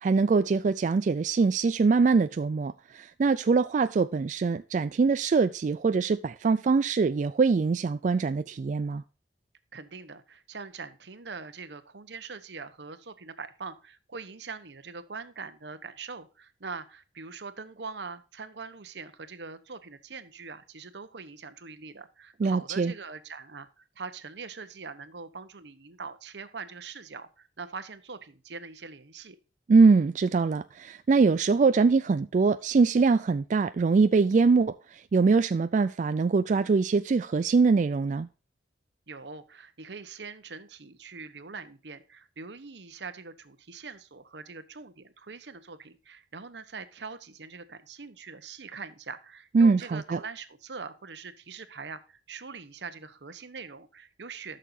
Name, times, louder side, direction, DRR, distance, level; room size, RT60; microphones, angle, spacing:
voice 1, 0.0-9.0 22.4-22.9 29.7-38.3 49.5-50.2, right 4 dB, 45° right, 0.3 m, -23 dB
voice 2, 9.7-29.4 39.1-54.6, right 4 dB, 80° right, 1.0 m, -42 dB
13.0 x 6.5 x 2.7 m
head